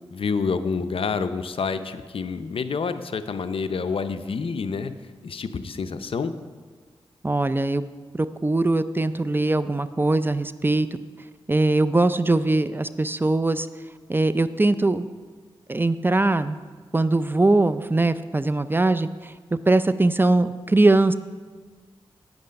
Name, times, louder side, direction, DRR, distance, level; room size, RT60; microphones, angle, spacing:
voice 1, 0.1-4.9 5.2-6.3, left 5 dB, 65° left, 10 dB, 0.6 m, -28 dB
voice 2, 7.2-7.8 8.4-10.9 11.5-13.7 14.1-15.1 15.7-16.6 16.9-21.1, right 2 dB, 20° right, 13 dB, 0.4 m, -21 dB
9.2 x 7.8 x 5.2 m, 1.5 s
cardioid pair, 60°, 10 cm